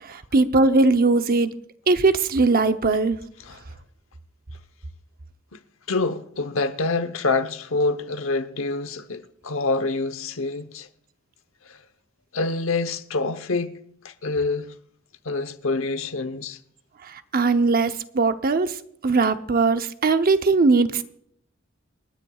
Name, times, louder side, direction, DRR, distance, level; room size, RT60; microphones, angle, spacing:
voice 1, 0.3-1.5 1.9-3.2 17.3-18.7 19.0-21.0, right 3 dB, 45° right, 0.8 m, -19 dB
voice 2, 5.9-10.9 11.6-11.8 12.3-13.7 14.0-14.7 15.2-16.6, left 3 dB, 80° left, 1.0 m, -26 dB
27.5 x 10.0 x 2.4 m
head